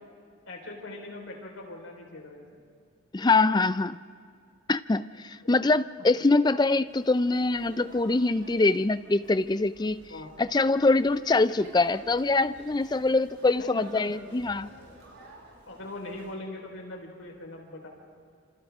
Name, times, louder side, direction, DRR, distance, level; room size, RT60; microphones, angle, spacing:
voice 1, 0.5-2.6 10.1-10.3 13.6-14.1 15.7-17.9, left 2 dB, 75° left, 0 dB, 4.5 m, -40 dB
voice 2, 3.1-4.0 4.7-10.0 10.4-14.7, left 3 dB, 20° left, 14 dB, 0.4 m, -24 dB
sound 1, 6.9-16.3, right 1 dB, 80° right, 5.9 m, -52 dB
29.0 x 27.0 x 3.7 m, 2.2 s
head